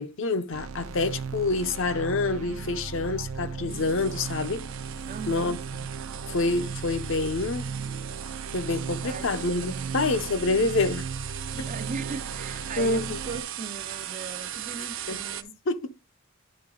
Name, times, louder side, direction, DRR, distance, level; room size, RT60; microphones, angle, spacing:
voice 1, 0.0-4.7 5.3-5.6 6.3-7.7 8.5-11.1 11.6-11.7 12.8-13.2 15.1-15.2 15.7-15.9, left 3 dB, 60° left, 0.6 m, -27 dB
sound 1, 0.5-13.4, right 5 dB, 85° right, 0.6 m, -36 dB
sound 2, 3.7-15.4, right 10 dB, 65° right, 0.8 m, -39 dB
voice 2, 5.1-5.6 9.0-10.0 11.5-15.6, right 5 dB, 35° right, 0.4 m, -39 dB
10.5 x 3.8 x 3.7 m
head